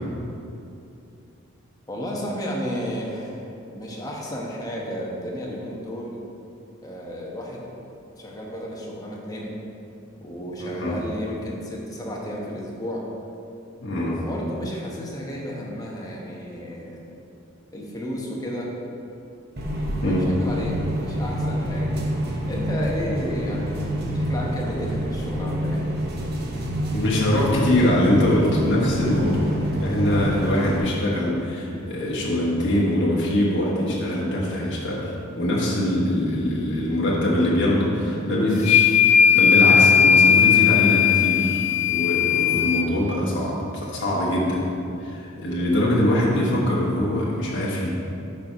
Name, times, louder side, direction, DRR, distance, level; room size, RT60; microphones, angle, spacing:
voice 1, 1.9-3.4 3.7-6.2 6.8-7.6 8.2-9.6 10.2-13.0 14.0-17.0 17.7-18.7 20.0-22.0 22.5-23.8 24.1-25.8, equal, 20° left, -3 dB, 1.1 m, -32 dB
voice 2, 10.6-10.9 13.8-14.2 20.0-20.3 26.9-44.6 45.0-47.9, left 1 dB, 60° left, -6 dB, 1.4 m, -23 dB
sound 1, 19.6-30.8, equal, 50° right, 0.9 m, -27 dB
sound 2, 38.6-42.9, left 8 dB, 35° left, 0.4 m, -17 dB
6.7 x 4.6 x 5.4 m, 2.7 s
head